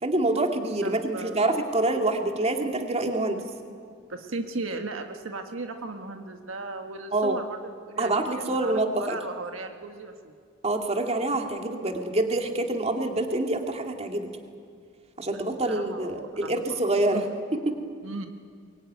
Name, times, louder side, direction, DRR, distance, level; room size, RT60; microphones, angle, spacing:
voice 1, 0.0-3.4 7.1-7.4 8.0-9.2 10.6-14.3 15.2-17.2 17.7-17.8, right 2 dB, 30° right, 3 dB, 2.3 m, -26 dB
voice 2, 0.8-1.6 4.1-8.7 9.0-10.3 15.3-16.6 17.1-17.2 18.0-18.3, right 3 dB, 75° right, 5 dB, 1.5 m, -36 dB
23.0 x 23.0 x 9.6 m, 2.2 s
head